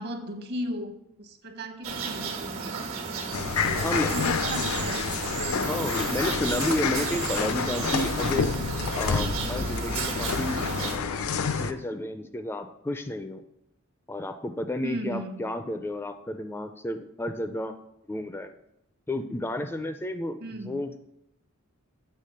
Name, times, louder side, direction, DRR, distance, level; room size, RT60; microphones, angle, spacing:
voice 1, 0.0-2.8 3.6-5.1 14.8-15.6 20.4-20.8, equal, 50° right, 6 dB, 1.0 m, -36 dB
sound 1, 1.8-10.9, right 5 dB, 80° right, 1.4 m, -33 dB
sound 2, 3.3-11.7, left 5 dB, 80° left, 0.5 m, -29 dB
voice 2, 5.6-8.5 9.0-13.4 14.1-17.7 18.1-18.5 19.1-21.0, left 1 dB, 10° left, 8 dB, 0.3 m, -32 dB
7.5 x 3.6 x 6.4 m, 0.82 s
head